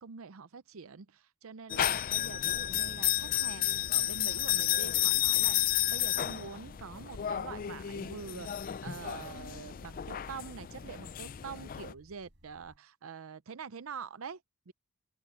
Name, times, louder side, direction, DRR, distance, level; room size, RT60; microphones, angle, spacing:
voice 1, 0.0-14.7, right 6 dB, 85° right, 0.6 m, -45 dB
sound 1, 1.7-11.9, left 13 dB, 40° left, 0.4 m, -32 dB
sound 2, 4.3-12.8, equal, 60° right, 6.1 m, -62 dB
open air
head